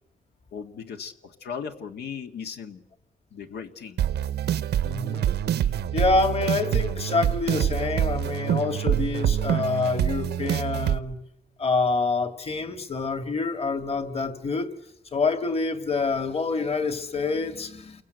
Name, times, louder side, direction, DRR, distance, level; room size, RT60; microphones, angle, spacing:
voice 1, 0.5-2.8 3.3-4.0, left 6 dB, 75° left, 5 dB, 1.8 m, -37 dB
sound 1, 4.0-11.0, right 10 dB, 85° right, 1.0 m, -26 dB
voice 2, 4.8-5.4 5.9-11.2 11.6-14.7 15.1-18.0, left 4 dB, 35° left, 9 dB, 2.2 m, -27 dB
29.0 x 23.0 x 8.1 m, 0.77 s
cardioid pair, 120°, 17 cm